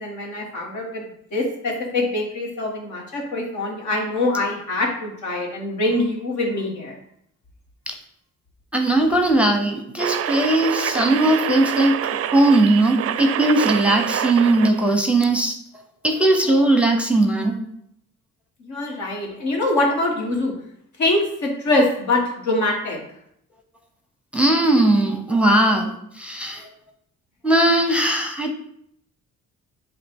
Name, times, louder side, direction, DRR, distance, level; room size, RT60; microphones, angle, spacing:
voice 1, 0.0-7.0 18.7-20.5 21.0-23.0, left 2 dB, 70° left, 0 dB, 1.8 m, -24 dB
voice 2, 8.7-11.9 12.3-15.6 16.0-17.5 24.3-26.7 27.4-28.5, right 2 dB, 5° right, 3 dB, 0.8 m, -18 dB
sound 1, 10.0-14.9 15.2-15.3, right 10 dB, 50° right, 0.4 m, -26 dB
7.6 x 2.6 x 5.4 m, 0.71 s
cardioid pair, 90°, 30 cm